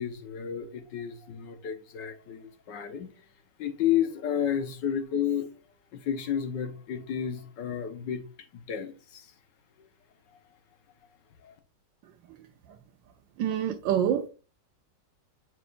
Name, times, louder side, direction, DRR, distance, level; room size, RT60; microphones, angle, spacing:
voice 1, 0.0-3.1 3.6-5.5 5.9-8.2 8.5-9.3 9.8-9.9 11.4-11.6, left 9 dB, 70° left, 1.6 m, -31 dB
voice 2, 13.4-14.3, right 9 dB, 80° right, 1.4 m, -26 dB
7.8 x 5.5 x 2.5 m
omnidirectional pair, 2.0 m